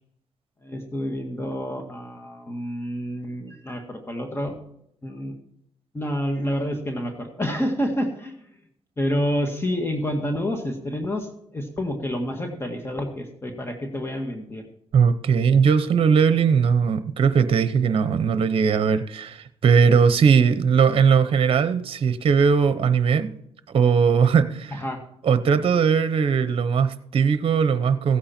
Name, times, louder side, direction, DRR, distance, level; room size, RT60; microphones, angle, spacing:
voice 1, 0.6-4.6 5.0-5.3 5.9-8.5 9.0-14.6 24.7-25.0, equal, 20° left, 4 dB, 1.9 m, -28 dB
voice 2, 14.9-23.3 23.7-24.8 25.2-28.2, right 6 dB, 55° right, 12 dB, 0.9 m, -19 dB
15.5 x 8.7 x 4.4 m, 0.74 s
cardioid pair, 75°, 11 cm